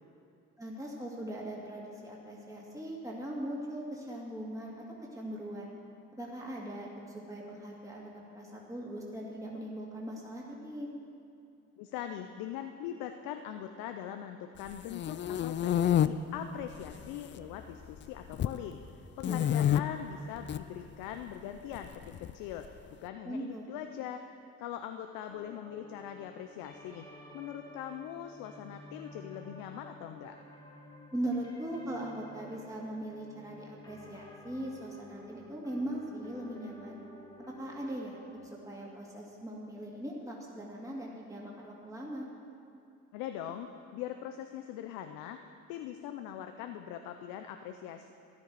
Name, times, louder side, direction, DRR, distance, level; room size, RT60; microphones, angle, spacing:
voice 1, 0.6-4.7 5.1-5.7 6.1-10.9 19.2-19.5 23.2-23.7 31.1-37.0 37.5-38.2 38.5-42.3, right 1 dB, 10° right, -3 dB, 2.4 m, -40 dB
voice 2, 11.8-18.8 19.2-24.2 24.6-27.0 27.3-30.4 43.1-45.4 45.7-48.1, left 10 dB, 90° left, 7 dB, 0.6 m, -41 dB
sound 1, 14.7-16.1 16.7-17.3 17.6-18.6 19.2-19.8 20.4-20.6 21.7-22.7, left 10 dB, 35° left, 0.4 m, -28 dB
sound 2, 25.3-38.4, left 1 dB, 10° left, 2.3 m, -52 dB
13.5 x 10.5 x 4.8 m, 2.6 s
supercardioid pair, 80°, 33 cm